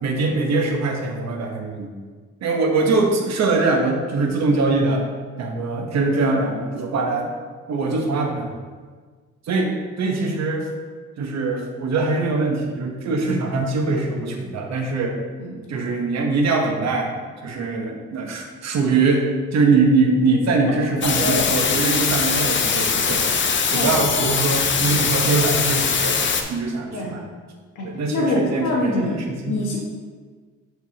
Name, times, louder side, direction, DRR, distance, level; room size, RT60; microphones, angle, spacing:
voice 1, 0.0-1.9 2.4-5.0 5.4-7.3 7.7-8.5 9.5-9.7 10.0-10.7 11.2-15.2 15.7-17.2 17.4-23.2 23.7-26.2 26.5-27.2 27.8-29.2 29.4-29.6, right 3 dB, 60° right, 2 dB, 1.0 m, -22 dB
sound 1, 21.0-26.4, left 6 dB, 40° left, 0.7 m, -21 dB
voice 2, 21.2-21.5 23.7-23.9 26.9-27.2 27.7-29.8, left 1 dB, 85° left, -3 dB, 1.5 m, -25 dB
8.0 x 4.6 x 2.8 m, 1.5 s
cardioid pair, 90°, 30 cm